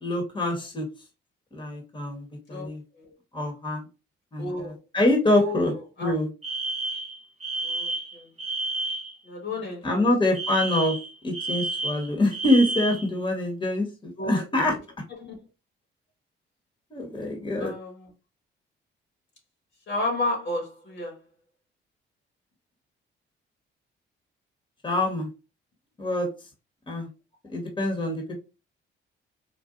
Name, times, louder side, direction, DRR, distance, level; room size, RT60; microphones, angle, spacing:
voice 1, 0.0-0.9 1.5-2.8 3.3-3.8 4.3-5.7 6.0-6.3 9.8-11.0 11.2-14.7 16.9-17.7 24.8-25.3 26.0-26.3 26.9-27.1 27.5-28.3, left 1 dB, 25° left, 1.1 m, -25 dB
voice 2, 2.5-3.1 4.4-4.8 5.3-6.2 7.6-8.3 9.2-10.1 14.2-14.4 15.2-15.4 17.6-18.1 19.9-21.2, left 2 dB, 65° left, 1.4 m, -32 dB
Alarm, 6.4-9.1 10.3-13.1, right 2 dB, 30° right, 0.9 m, -31 dB
3.7 x 2.3 x 2.4 m
cardioid pair, 90°, 20 cm